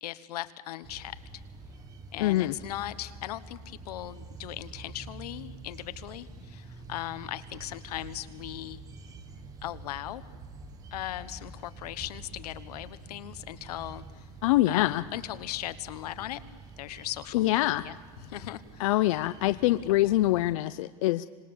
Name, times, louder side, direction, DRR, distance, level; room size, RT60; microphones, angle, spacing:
voice 1, 0.0-1.2 2.1-8.8 9.6-10.3 10.9-14.3 14.7-16.4 16.8-19.0 19.4-20.1, left 14 dB, 90° left, 13 dB, 1.2 m, -39 dB
sound 1, 0.8-20.5, right 3 dB, 20° right, 1.2 m, -47 dB
voice 2, 2.2-2.5 14.4-15.0 17.3-17.9 18.8-21.3, left 16 dB, 60° left, 12 dB, 0.6 m, -24 dB
26.0 x 19.5 x 7.1 m, 1.5 s
supercardioid pair, 175°, 19 cm